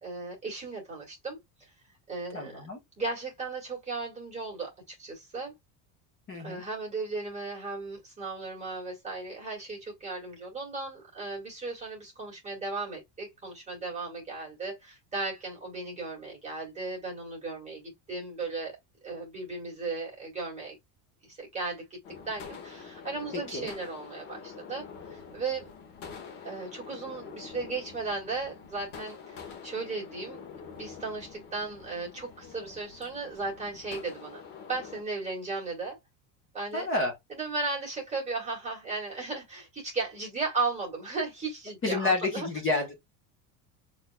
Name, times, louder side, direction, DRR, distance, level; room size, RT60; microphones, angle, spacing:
voice 1, 0.0-1.7 2.1-2.6 3.0-5.5 6.4-18.8 19.0-20.8 21.2-22.0 22.3-25.7 26.4-30.4 30.7-34.4 34.7-36.0 36.5-36.9 37.3-42.5, right 3 dB, 15° right, 2.0 m, -36 dB
voice 2, 2.3-2.8 6.3-6.6 23.3-23.7 36.7-37.1 41.8-43.0, left 3 dB, 25° left, 1.2 m, -29 dB
sound 1, 22.0-35.0, left 6 dB, 50° left, 1.4 m, -46 dB
6.4 x 3.2 x 2.3 m
cardioid pair, 175°, 49 cm